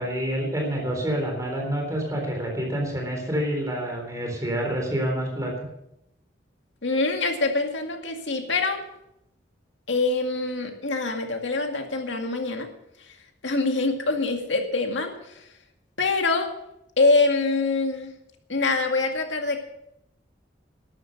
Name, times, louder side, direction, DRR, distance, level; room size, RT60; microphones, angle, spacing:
voice 1, 0.0-5.7, equal, 15° right, 1 dB, 3.8 m, -28 dB
voice 2, 6.8-8.8 9.9-12.7 13.4-15.1 16.0-16.5 17.0-18.1 18.5-19.6, left 3 dB, 85° left, 4 dB, 2.1 m, -24 dB
12.5 x 11.5 x 6.5 m, 0.79 s
head